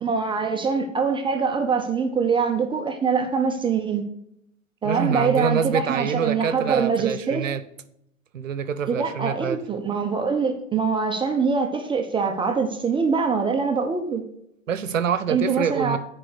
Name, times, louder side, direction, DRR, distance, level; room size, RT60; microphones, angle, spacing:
voice 1, 0.0-4.0 4.8-7.5 8.9-14.2 15.3-16.0, right 5 dB, 10° right, 4 dB, 0.7 m, -24 dB
voice 2, 4.8-7.6 8.3-9.6 14.7-16.0, right 7 dB, 70° right, 14 dB, 0.9 m, -26 dB
10.0 x 4.8 x 6.6 m, 0.76 s
figure-of-eight pair, 95°, 40 cm